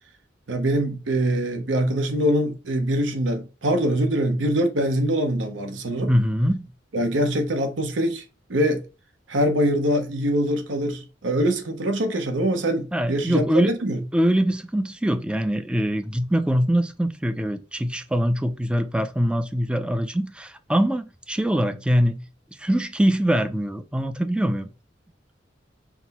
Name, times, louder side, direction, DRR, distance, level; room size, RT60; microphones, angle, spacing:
voice 1, 0.5-6.1 6.9-8.2 8.5-8.8 9.3-14.0, equal, 80° right, 0.8 m, -23 dB
voice 2, 6.1-6.7 12.9-13.7 14.1-22.2 22.6-24.7, equal, 5° right, 0.4 m, -23 dB
6.0 x 2.0 x 4.1 m
head